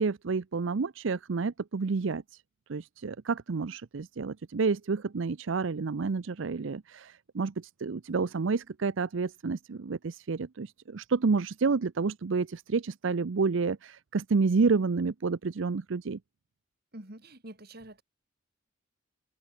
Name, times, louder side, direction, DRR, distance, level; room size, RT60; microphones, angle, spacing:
voice 1, 0.0-2.4 2.7-16.2, right 4 dB, 70° right, 0.6 m, -29 dB
voice 2, 16.9-18.0, right 1 dB, 50° right, 3.2 m, -46 dB
head